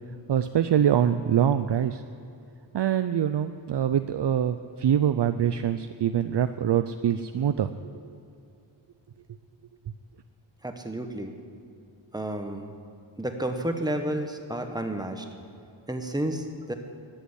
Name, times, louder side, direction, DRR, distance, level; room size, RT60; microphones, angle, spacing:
voice 1, 0.3-2.0 2.7-7.7, right 9 dB, 60° right, 10 dB, 0.6 m, -24 dB
voice 2, 10.6-11.3 12.1-12.7 13.2-15.3 15.6-16.7, right 1 dB, 10° right, 5 dB, 1.3 m, -31 dB
14.5 x 8.1 x 9.9 m, 2.6 s
wide cardioid pair, 105°, 48 cm